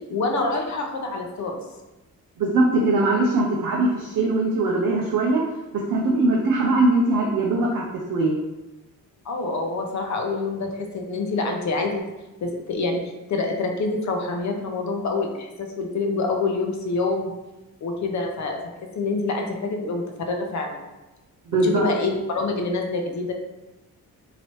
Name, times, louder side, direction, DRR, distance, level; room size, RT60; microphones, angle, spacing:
voice 1, 0.1-1.6 9.2-12.0 12.4-13.0 13.3-17.3 17.8-18.6 18.9-20.8 21.6-23.3, left 3 dB, 50° left, 3 dB, 0.6 m, -26 dB
voice 2, 2.4-5.5 5.7-8.4 21.5-21.9, right 2 dB, 65° right, -2 dB, 0.6 m, -21 dB
3.1 x 2.8 x 3.0 m, 1.0 s
cardioid pair, 130°, 36 cm